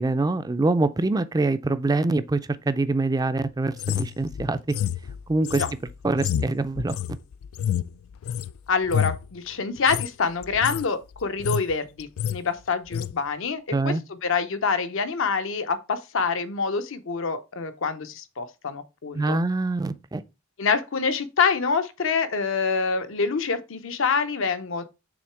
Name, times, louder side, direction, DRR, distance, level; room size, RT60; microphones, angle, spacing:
voice 1, 0.0-2.4 2.7-4.6 5.3-5.6 6.0-7.0 13.7-14.0 19.1-20.2, right 2 dB, 20° right, 0.4 m, -24 dB
sound 1, 3.8-8.5 8.8-9.3 9.8-10.1 10.4-10.9 11.2-11.7 12.0-12.4 12.9-13.1, left 9 dB, 85° left, 0.3 m, -29 dB
voice 2, 8.7-13.9 14.2-19.4 20.6-24.8, left 5 dB, 70° left, 0.7 m, -26 dB
6.2 x 3.7 x 4.5 m
head